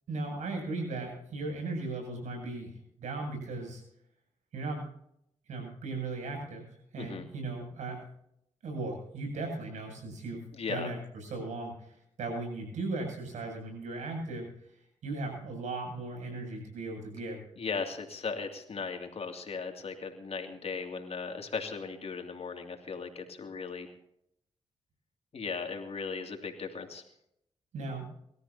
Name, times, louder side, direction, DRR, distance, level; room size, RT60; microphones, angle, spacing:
voice 1, 0.1-3.8 4.5-4.9 5.5-8.0 8.6-14.7 15.0-17.4 27.7-28.1, right 2 dB, 80° right, 2 dB, 8.0 m, -37 dB
voice 2, 10.5-10.9 17.6-23.9 25.3-27.0, left 5 dB, 55° left, 3 dB, 2.7 m, -37 dB
25.0 x 13.5 x 2.9 m, 0.75 s
supercardioid pair, 50°, 12 cm